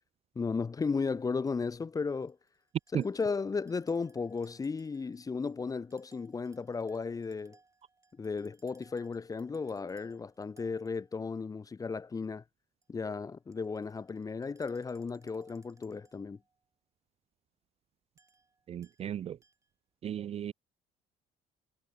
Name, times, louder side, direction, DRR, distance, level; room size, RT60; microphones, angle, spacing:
voice 1, 0.4-2.4 2.9-7.6 8.2-12.4 12.9-16.4, left 4 dB, 20° left, 0.5 m, -35 dB
sound 1, 1.4-1.5 2.0-11.4 12.8-12.9 13.3-16.6 18.2-19.1 19.4-19.7, right 3 dB, 15° right, 6.1 m, -66 dB
voice 2, 18.7-19.4 20.0-20.5, right 10 dB, 40° right, 0.3 m, -35 dB
cardioid pair, 110°, 17 cm